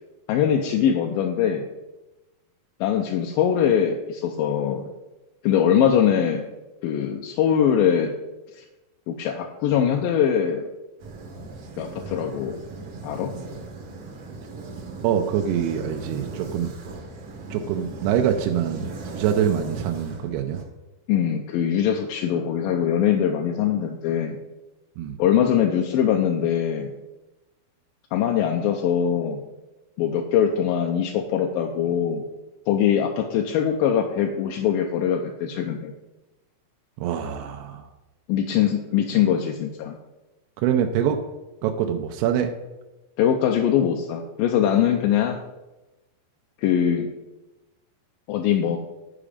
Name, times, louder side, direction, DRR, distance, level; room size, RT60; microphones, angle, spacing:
voice 1, 0.3-1.6 2.8-4.8 5.4-6.5 6.8-8.1 8.6-8.7 9.1-10.7 11.8-12.6 13.0-13.3 21.1-24.4 25.2-26.9 28.1-29.4 30.0-32.2 32.7-35.9 38.3-40.0 43.2-45.4 46.6-47.1 48.3-48.8, left 9 dB, 80° left, 2 dB, 2.1 m, -22 dB
sound 1, 11.0-20.6, right 3 dB, 70° right, 1.5 m, -38 dB
voice 2, 15.0-16.7 17.5-20.6 25.0-25.2 37.0-37.9 40.6-41.2 41.6-42.5, right 9 dB, 90° right, 4 dB, 2.6 m, -24 dB
11.0 x 5.0 x 5.0 m, 1.0 s
omnidirectional pair, 4.5 m